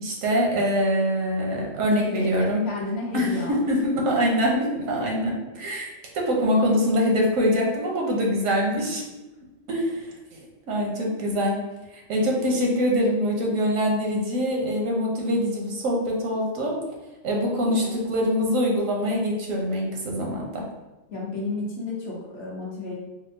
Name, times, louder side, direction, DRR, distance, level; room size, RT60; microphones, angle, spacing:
voice 1, 0.0-2.6 3.1-5.9 6.1-9.0 9.7-11.6 11.9-16.8 17.2-20.6, equal, 85° right, -1 dB, 1.2 m, -24 dB
voice 2, 1.9-2.3 2.6-3.7 4.1-4.2 8.8-8.9 17.7-17.9 21.1-22.9, left 3 dB, 55° left, -4 dB, 1.0 m, -32 dB
4.3 x 2.1 x 2.6 m, 1.1 s
omnidirectional pair, 1.4 m